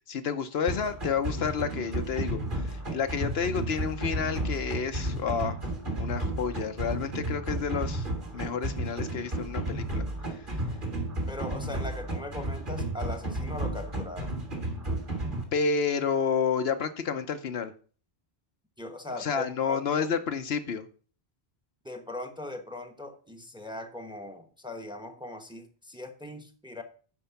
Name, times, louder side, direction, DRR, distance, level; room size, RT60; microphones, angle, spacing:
voice 1, 0.1-5.6 6.0-8.1 8.3-10.0 15.5-17.7 19.2-20.9, left 6 dB, 70° left, 8 dB, 1.0 m, -30 dB
sound 1, 0.7-15.4, right 1 dB, 50° right, 2.4 m, -33 dB
voice 2, 11.3-14.4 18.8-20.1 21.8-26.8, left 2 dB, 5° right, 7 dB, 1.0 m, -40 dB
11.0 x 4.6 x 5.7 m, 0.41 s
omnidirectional pair, 1.1 m